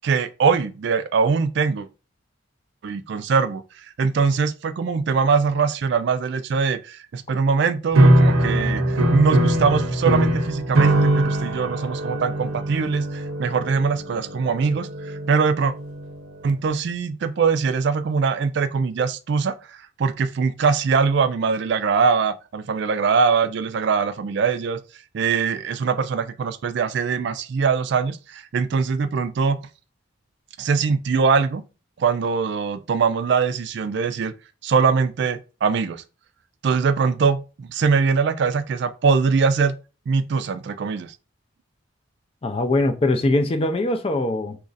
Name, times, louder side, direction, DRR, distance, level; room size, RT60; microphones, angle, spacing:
voice 1, 0.0-1.9 2.8-15.7 16.4-24.8 25.1-29.6 30.6-31.6 32.0-34.3 34.6-36.0 36.6-39.7 40.1-41.1, right 5 dB, 55° right, 0.3 m, -22 dB
sound 1, 7.9-16.3, right 1 dB, 85° right, 0.7 m, -21 dB
voice 2, 42.4-44.6, left 2 dB, 30° left, 0.4 m, -22 dB
2.9 x 2.5 x 3.9 m
head